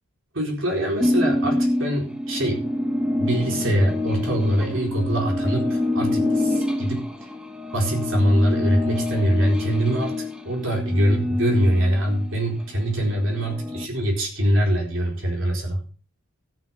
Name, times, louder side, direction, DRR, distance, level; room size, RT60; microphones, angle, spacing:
voice 1, 0.3-2.7 3.2-7.0 7.7-10.1 10.4-15.8, equal, 60° right, 1 dB, 4.2 m, -23 dB
sound 1, 1.0-12.4 12.8-13.9, left 2 dB, 5° right, 0.9 m, -26 dB
13.0 x 7.4 x 5.9 m, 0.38 s
head